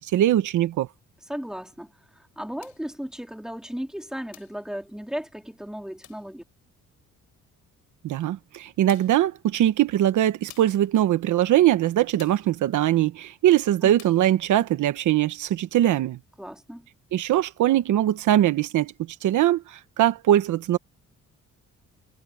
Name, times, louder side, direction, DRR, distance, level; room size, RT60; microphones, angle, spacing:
voice 1, 0.1-0.9 8.0-16.2 17.1-18.9 19.2-20.8, right 12 dB, 75° right, 1.3 m, -21 dB
voice 2, 1.3-6.4 13.8-13.9 16.4-16.9, equal, ahead, 4.0 m, -35 dB
sound 1, 2.6-2.9 4.3-4.6 6.0-6.3 8.1-8.2 8.9-9.3 10.5-10.9 12.2-12.5 14.0-14.3, left 12 dB, 80° left, 4.5 m, -49 dB
cardioid pair, 90°, 30 cm